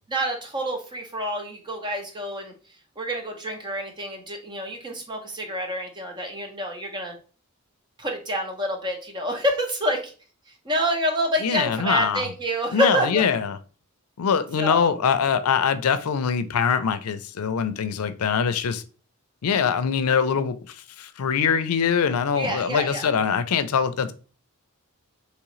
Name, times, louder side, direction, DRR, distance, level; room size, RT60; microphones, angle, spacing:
voice 1, 0.1-2.5 3.0-7.1 8.0-10.1 10.6-13.3 14.6-14.9 22.3-23.1, equal, 20° right, 0.8 m, -27 dB
voice 2, 11.4-12.3 12.7-13.6 14.2-18.8 19.4-24.1, left 6 dB, 80° left, 0.4 m, -23 dB
3.7 x 3.1 x 3.0 m
head